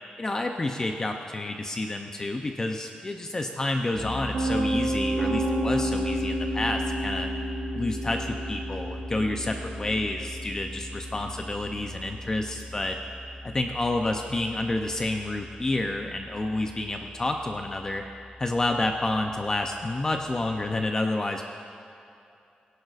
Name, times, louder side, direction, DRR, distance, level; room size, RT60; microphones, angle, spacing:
voice 1, 0.2-7.3 7.7-13.0 13.4-18.0 18.4-21.4, left 2 dB, 25° left, 4 dB, 0.5 m, -29 dB
Piano, 3.9-15.9, right 1 dB, 65° right, 3.3 m, -32 dB
21.0 x 11.0 x 2.5 m, 2.6 s
wide cardioid pair, 140°, 3 cm